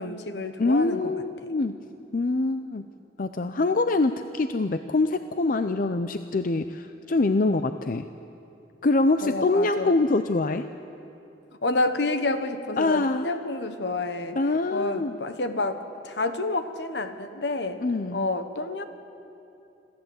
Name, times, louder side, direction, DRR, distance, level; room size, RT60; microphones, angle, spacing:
voice 1, 0.0-1.1 9.2-9.9 11.6-14.4 14.7-15.8 16.0-17.8 18.1-18.8, left 2 dB, 75° left, 9 dB, 1.3 m, -29 dB
voice 2, 0.6-1.7 2.1-2.8 3.2-8.1 8.8-10.7 12.8-13.3 14.4-15.2 17.8-18.3, left 3 dB, 50° left, 9 dB, 0.5 m, -24 dB
26.5 x 14.0 x 8.1 m, 2.8 s
head